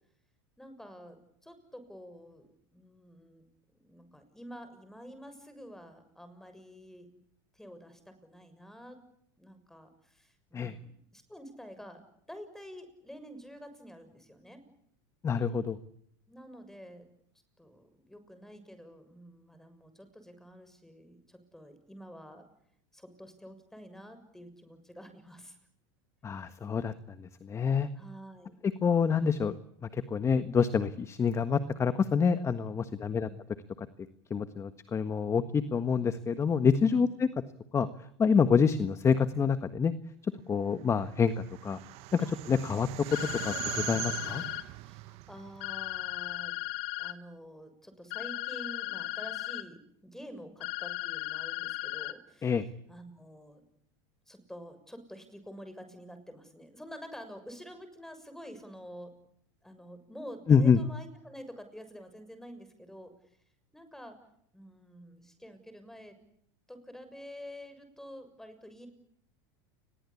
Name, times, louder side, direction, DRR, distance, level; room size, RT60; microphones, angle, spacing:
voice 1, 0.6-3.4 3.8-7.1 7.5-9.0 9.4-12.0 12.3-14.6 16.3-17.1 17.6-22.5 22.9-25.6 27.9-28.6 33.0-33.4 36.9-37.2 42.2-42.4 44.8-46.5 47.0-52.6 52.9-53.6 54.3-59.1 59.6-63.1 63.7-64.2 64.5-66.1 66.7-68.9, equal, 5° left, 10 dB, 6.8 m, -48 dB
voice 2, 15.2-15.8 26.2-26.9 27.2-27.9 28.8-29.5 29.9-33.3 33.8-33.9 34.3-37.3 37.7-37.9 38.2-39.9 40.2-41.8 42.1-43.2 43.4-44.4 52.4-52.6 60.5-60.8, left 6 dB, 20° left, 11 dB, 1.5 m, -27 dB
sound 1, 40.9-46.4, right 19 dB, 55° right, 1.2 m, -41 dB
sound 2, 43.1-44.6 45.6-47.1 48.1-49.6 50.6-52.1, left 17 dB, 65° left, 2.6 m, -36 dB
29.5 x 22.0 x 8.6 m, 0.69 s
supercardioid pair, 120°, 13 cm